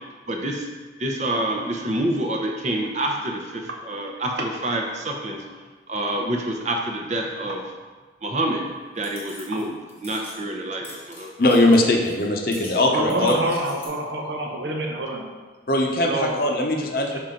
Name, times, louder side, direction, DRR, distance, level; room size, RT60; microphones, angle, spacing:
voice 1, 0.3-0.7 1.0-5.4 5.9-7.6 8.2-8.6 9.0-9.8 10.0-11.3, right 1 dB, 40° right, 1 dB, 0.7 m, -27 dB
sound 1, 9.0-9.6 9.9-10.4 10.8-12.2 12.5-13.9, left 1 dB, 15° left, 1.1 m, -43 dB
voice 2, 11.4-13.4 15.7-17.2, left 1 dB, 50° left, 1 dB, 0.7 m, -20 dB
voice 3, 12.9-15.2 16.1-16.4 17.1-17.2, right 1 dB, 70° right, 1 dB, 0.9 m, -26 dB
5.8 x 4.4 x 3.8 m, 1.4 s
head